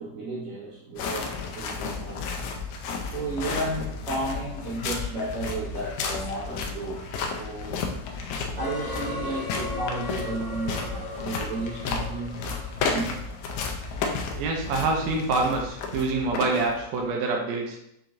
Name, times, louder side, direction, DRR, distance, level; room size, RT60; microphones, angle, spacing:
voice 1, 0.0-2.5 3.1-7.0 7.4-7.8 8.5-12.4 12.9-13.1, right 2 dB, 65° right, -9 dB, 2.9 m, -33 dB
sound 1, 1.0-17.0, left 4 dB, 80° left, 2.0 m, -33 dB
sound 2, 8.6-13.6, left 2 dB, 50° left, 0.9 m, -37 dB
voice 2, 14.4-17.8, right 3 dB, 80° right, 1 dB, 1.6 m, -26 dB
6.5 x 2.9 x 2.5 m, 0.78 s
omnidirectional pair, 3.7 m